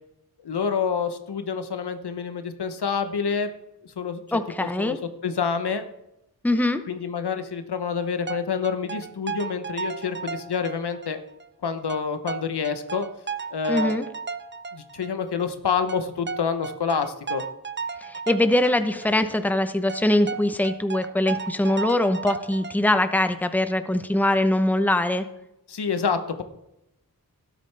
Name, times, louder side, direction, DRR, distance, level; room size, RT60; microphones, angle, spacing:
voice 1, 0.4-3.5 3.8-4.2 4.6-5.8 6.9-11.2 11.6-13.1 13.5-13.9 14.7-17.4 25.7-26.4, left 6 dB, 90° left, 9 dB, 0.9 m, -27 dB
voice 2, 4.3-5.0 6.4-6.8 13.7-14.0 18.0-25.2, left 1 dB, 5° left, 9 dB, 0.7 m, -22 dB
sound 1, 8.0-11.2 11.4-11.5 11.9-15.5 15.9-19.1 19.4-19.5 19.9-22.7, right 5 dB, 30° right, 0.5 m, -34 dB
12.5 x 10.0 x 3.3 m, 0.87 s
wide cardioid pair, 70°, 39 cm